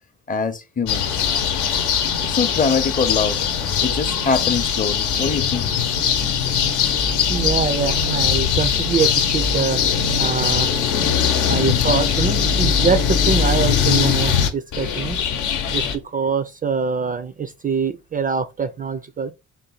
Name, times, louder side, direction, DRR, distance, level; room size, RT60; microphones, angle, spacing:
voice 1, 0.3-1.3 2.2-3.4 3.8-5.7 11.4-11.8, left 5 dB, 25° left, 0.6 m, -24 dB
sound 1, 0.9-16.0, left 7 dB, 85° left, 0.8 m, -20 dB
voice 2, 7.3-9.8 10.2-10.7 11.5-15.2 15.7-15.8 16.1-19.3, right 5 dB, 30° right, 0.3 m, -24 dB
3.9 x 2.2 x 4.0 m
cardioid pair, 90°, 30 cm